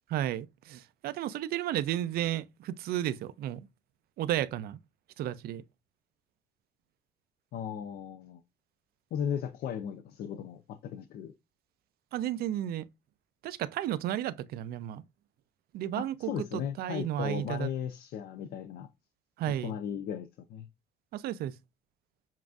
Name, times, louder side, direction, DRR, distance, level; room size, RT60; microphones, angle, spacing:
voice 1, 0.1-3.7 4.2-4.8 5.2-5.6 12.1-12.8 13.4-15.0 15.7-16.4 16.8-17.7 19.4-19.7 21.1-21.5, right 12 dB, 65° right, 0.4 m, -33 dB
voice 2, 7.5-8.4 9.1-11.3 16.0-18.9 19.6-20.7, left 8 dB, 65° left, 0.4 m, -36 dB
7.2 x 2.5 x 2.4 m
cardioid pair, 110°, 17 cm